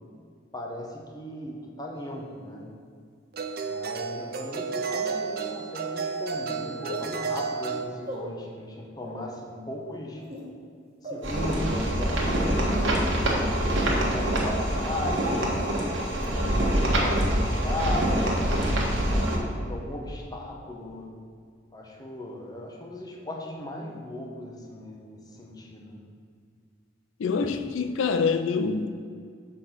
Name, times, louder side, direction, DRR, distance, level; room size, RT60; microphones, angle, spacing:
voice 1, 0.5-2.7 3.6-10.2 11.0-13.6 14.1-15.7 16.3-18.4 19.1-21.1 21.7-26.0, left 1 dB, 20° left, 0.9 m, -37 dB
sound 1, 2.0-2.1 3.3-7.9, right 5 dB, 50° right, 0.5 m, -32 dB
sound 2, 4.3-4.4 5.3-5.4 6.8-7.0 8.0-8.2 9.0-9.2 10.2-10.5 11.0-11.3 12.0-12.1 12.7-12.9 13.6-13.7 14.4-14.5 15.2-15.3 16.2-16.3 17.1-17.2 18.0-18.1 18.6-18.7, equal, 35° right, 1.3 m, -38 dB
sound 3, 11.2-19.4, right 1 dB, 85° right, 1.5 m, -25 dB
voice 2, 27.2-29.0, left 5 dB, 85° left, 0.4 m, -26 dB
6.9 x 4.3 x 5.7 m
head